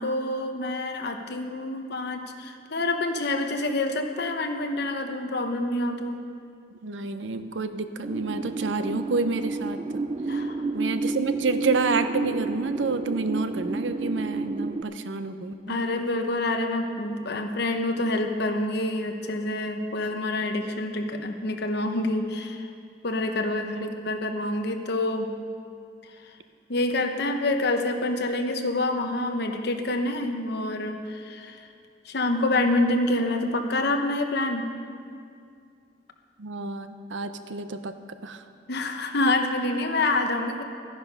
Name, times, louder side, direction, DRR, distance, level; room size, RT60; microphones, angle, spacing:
voice 1, 0.0-6.2 10.3-10.6 15.7-22.7 23.0-25.3 26.7-31.6 32.0-34.7 38.7-40.6, left 2 dB, 60° left, 5 dB, 1.0 m, -27 dB
voice 2, 6.8-9.8 10.7-15.9 23.6-23.9 36.4-38.0 38.2-38.4, right 3 dB, 85° right, 10 dB, 0.7 m, -29 dB
sound 1, 8.0-14.8, right 3 dB, 30° right, 0.3 m, -30 dB
13.0 x 10.0 x 5.4 m, 2.3 s
head